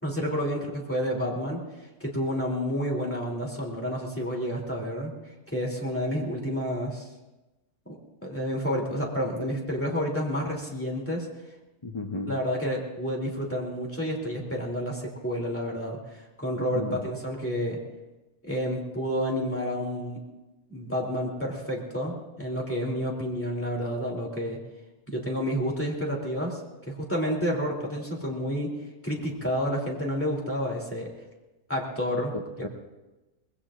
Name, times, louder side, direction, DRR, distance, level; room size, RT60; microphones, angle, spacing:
voice 1, 0.0-1.6 2.0-5.1 5.5-7.1 7.8-11.3 12.3-17.8 18.4-20.2 20.7-24.6 25.1-26.6 26.9-28.7 29.0-31.1 31.7-32.7, equal, 10° left, -3 dB, 3.0 m, -30 dB
voice 2, 11.8-12.3 16.6-17.0 32.3-32.7, left 2 dB, 25° left, 3 dB, 0.7 m, -34 dB
25.0 x 20.5 x 2.5 m, 1.1 s
omnidirectional pair, 1.6 m